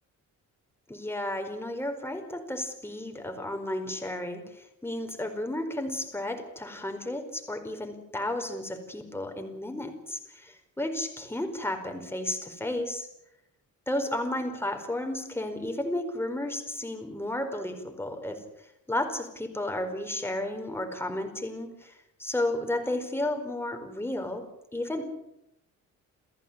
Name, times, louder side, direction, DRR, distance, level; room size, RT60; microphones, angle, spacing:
voice 1, 0.9-13.1 13.9-21.9 22.2-24.4 24.7-25.1, left 1 dB, 10° left, 5 dB, 4.8 m, -33 dB
29.5 x 15.0 x 8.8 m, 0.83 s
cardioid pair, 130°, 30 cm